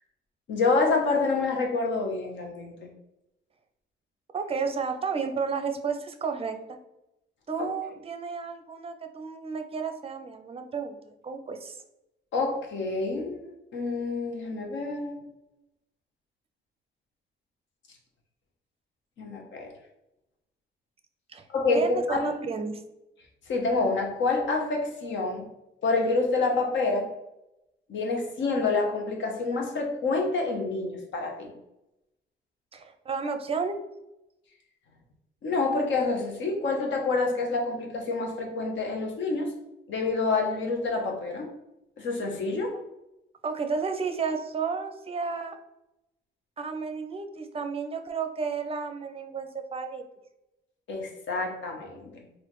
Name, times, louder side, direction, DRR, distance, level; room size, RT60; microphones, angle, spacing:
voice 1, 0.5-2.9 7.6-7.7 12.3-15.2 19.2-19.7 21.5-22.2 23.5-25.4 25.8-27.1 27.9-31.5 35.4-39.5 39.9-41.5 42.0-42.7 50.9-52.2, left 3 dB, 70° left, 1 dB, 1.0 m, -27 dB
voice 2, 4.3-6.6 7.5-11.0 11.2-11.8 21.3-21.5 21.7-22.8 32.7-33.8 43.4-45.6 46.6-50.0, right 5 dB, 30° right, 7 dB, 0.5 m, -32 dB
4.1 x 2.6 x 3.0 m, 0.90 s
cardioid pair, 90°, 20 cm